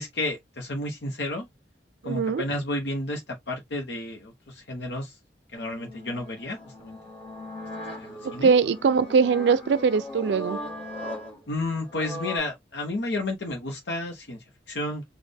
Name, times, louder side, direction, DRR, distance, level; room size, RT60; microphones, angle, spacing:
voice 1, 0.0-1.5 2.0-5.2 5.5-7.0 7.8-8.5 11.5-15.0, left 2 dB, 80° left, 1.0 m, -32 dB
voice 2, 2.0-2.4 8.2-10.6, right 5 dB, 80° right, 0.4 m, -22 dB
sound 1, 5.6-12.4, left 1 dB, 30° left, 1.6 m, -38 dB
4.2 x 2.5 x 3.3 m
head